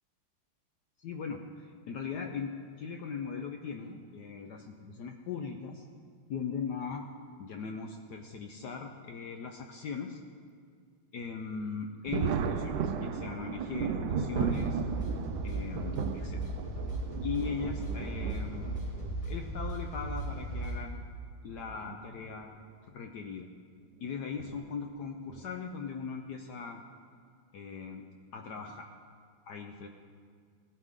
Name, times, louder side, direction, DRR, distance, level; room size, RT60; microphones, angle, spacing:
voice 1, 1.0-5.9 6.3-7.1 7.4-10.2 11.1-14.8 15.4-16.4 17.2-18.8 19.3-21.0 21.4-22.5 22.9-23.5 24.0-26.8 27.5-28.1 28.3-28.9 29.5-29.9, left 5 dB, 70° left, 4 dB, 1.0 m, -39 dB
Thunder, 12.1-19.1 20.1-20.2 21.7-22.0 22.3-22.4 24.4-24.6 25.3-25.6, right 6 dB, 70° right, 1.2 m, -35 dB
sound 1, 14.5-20.8, right 2 dB, 15° left, 1.7 m, -36 dB
17.5 x 9.8 x 3.7 m, 2.1 s
omnidirectional pair, 2.3 m